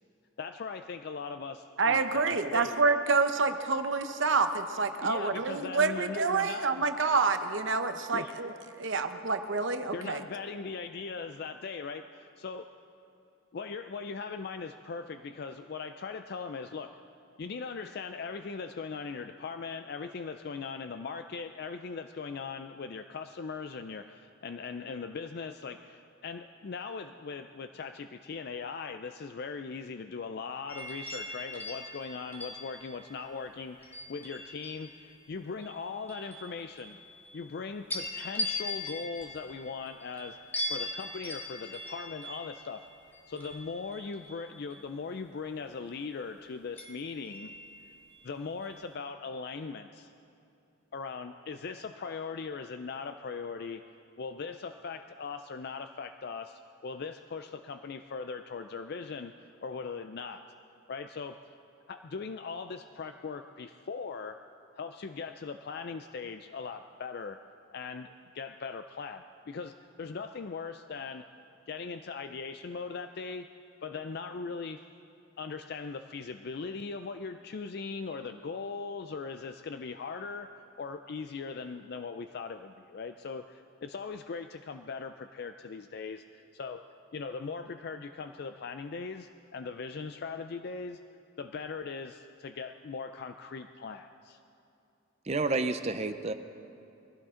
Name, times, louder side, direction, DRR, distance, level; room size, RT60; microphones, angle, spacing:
voice 1, 0.4-2.8 5.0-6.7 8.1-8.3 9.9-12.7 13.5-16.9 17.4-37.0 37.3-40.4 40.7-42.8 43.3-47.5 48.2-50.1 50.9-53.8 54.2-59.3 59.6-60.4 60.9-61.4 61.9-64.4 64.8-67.4 67.7-69.7 70.0-71.2 71.7-73.5 73.8-74.8 75.4-80.5 80.8-86.8 87.1-91.0 91.4-94.4, left 5 dB, 50° left, 8 dB, 0.4 m, -39 dB
voice 2, 1.8-10.2, right 4 dB, 60° right, 8 dB, 0.8 m, -28 dB
sound 1, 30.7-35.0 35.6-37.5 37.9-44.8 46.8-48.2 48.6-48.9, left 2 dB, 10° left, 1.6 m, -40 dB
voice 3, 95.3-96.3, right 3 dB, 30° right, 10 dB, 0.5 m, -30 dB
22.5 x 16.0 x 3.8 m, 2.8 s
head